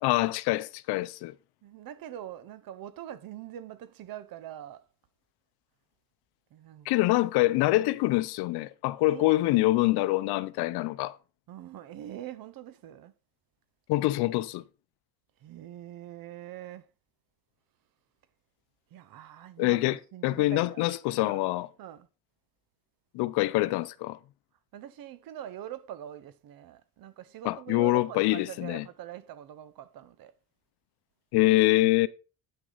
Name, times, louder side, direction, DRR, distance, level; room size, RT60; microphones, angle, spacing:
voice 1, 0.0-1.3 6.9-11.1 13.9-14.6 19.6-21.7 23.1-24.2 27.4-28.8 31.3-32.1, left 18 dB, 75° left, 0.6 m, -25 dB
voice 2, 1.6-4.9 6.5-7.2 7.8-7.9 9.0-9.6 11.5-13.1 15.4-16.9 18.9-20.9 21.2-21.5 21.8-22.1 24.7-30.3, right 11 dB, 60° right, 0.8 m, -43 dB
9.2 x 6.1 x 3.9 m
supercardioid pair, 80°, 39 cm